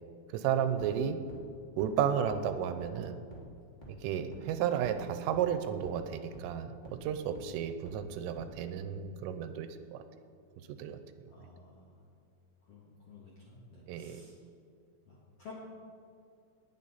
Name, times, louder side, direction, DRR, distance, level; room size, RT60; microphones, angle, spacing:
voice 1, 0.3-1.2 1.8-3.2 3.9-10.0 10.6-11.0 13.9-14.2, right 9 dB, 85° right, 9 dB, 3.2 m, -33 dB
sound 1, 0.8-0.9 1.3-1.4 1.8-1.9 2.3-2.4 2.8-2.9 3.3-3.4 3.8-3.9 4.3-4.4 4.8-4.9 5.3-5.4 5.8-5.9 6.3-6.4 6.8-6.9 7.3-7.4 7.8-7.9 8.3-8.4, right 1 dB, 40° left, 0.6 m, -48 dB
voice 2, 11.3-11.9 12.7-14.3 15.0-15.6, left 3 dB, 75° left, -5 dB, 1.3 m, -52 dB
19.5 x 9.1 x 4.1 m, 2.4 s
omnidirectional pair, 5.8 m